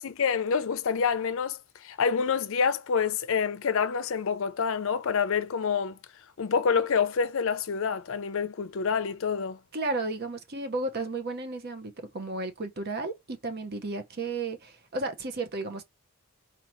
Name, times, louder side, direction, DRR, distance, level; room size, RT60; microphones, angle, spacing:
voice 1, 0.0-6.0 6.4-9.6, left 6 dB, 60° left, 0.5 m, -27 dB
voice 2, 9.7-15.8, right 2 dB, 45° right, 0.8 m, -33 dB
4.4 x 2.8 x 3.1 m
head